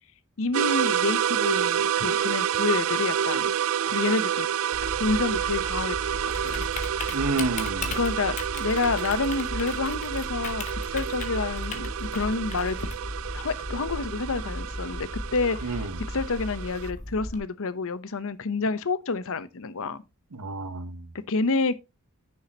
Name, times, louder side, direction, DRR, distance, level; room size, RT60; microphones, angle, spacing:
voice 1, 0.4-3.5 3.9-4.5 5.0-6.6 8.0-12.8 13.3-20.0 21.3-21.7, left 3 dB, 65° left, 0.8 m, -28 dB
sound 1, 0.5-16.9, right 9 dB, 65° right, 0.3 m, -29 dB
Typing, 4.7-17.4, left 1 dB, 35° left, 1.4 m, -36 dB
voice 2, 7.1-8.0 15.6-16.1 20.3-21.1, right 2 dB, 90° right, 1.0 m, -30 dB
10.0 x 6.5 x 2.9 m
head